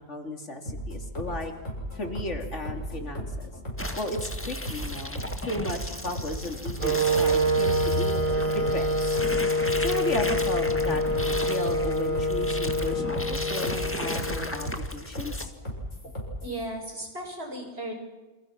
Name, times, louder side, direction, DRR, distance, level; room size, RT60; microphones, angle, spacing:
voice 1, 0.1-1.5 1.9-3.5 3.9-8.2 8.5-9.2 9.8-15.5, left 1 dB, 70° left, 4 dB, 3.3 m, -35 dB
sound 1, 0.7-16.6, equal, 90° left, 7.5 m, -35 dB
sound 2, 3.8-15.4, left 1 dB, 10° left, 1.8 m, -36 dB
sound 3, 6.8-14.8, equal, 40° right, 2.9 m, -26 dB
voice 2, 16.4-17.9, right 1 dB, 55° right, 2 dB, 6.4 m, -35 dB
28.5 x 27.5 x 6.1 m, 1.1 s
omnidirectional pair, 1.3 m